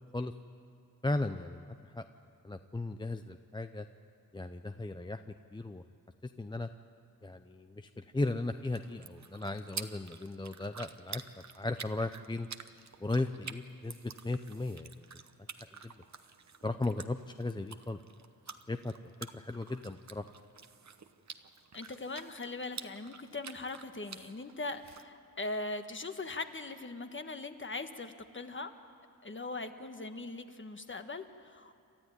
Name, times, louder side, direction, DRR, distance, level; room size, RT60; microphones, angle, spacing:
voice 1, 1.0-2.0 2.4-3.9 4.3-5.2 5.5-5.8 6.4-6.7 7.2-11.2 11.6-12.5 13.0-14.0 14.2-15.1 15.8-15.9 16.6-18.0 18.7-20.2, left 2 dB, 15° left, 8 dB, 0.6 m, -36 dB
sound 1, 8.4-25.0, right 6 dB, 50° right, 1.0 m, -49 dB
voice 2, 21.7-28.7 29.2-31.7, left 3 dB, 35° left, 7 dB, 1.4 m, -40 dB
29.0 x 13.0 x 9.9 m, 2.6 s
wide cardioid pair, 95°, 35 cm